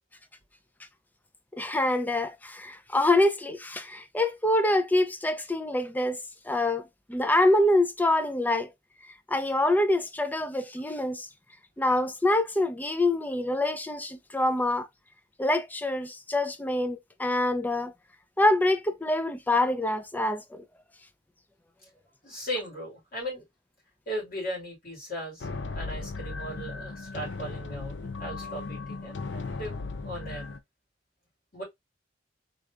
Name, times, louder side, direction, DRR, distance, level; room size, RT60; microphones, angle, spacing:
voice 1, 1.5-6.2 6.5-8.7 9.3-11.3 11.8-14.9 15.4-17.9 18.4-20.6, left 1 dB, 10° left, 0.4 m, -25 dB
voice 2, 22.2-23.4 24.1-25.5 25.7-29.8 30.0-30.4 31.5-31.6, equal, 50° left, 2.8 m, -37 dB
sound 1, 25.4-30.6, left 3 dB, 70° left, 0.5 m, -37 dB
4.0 x 3.3 x 2.4 m
head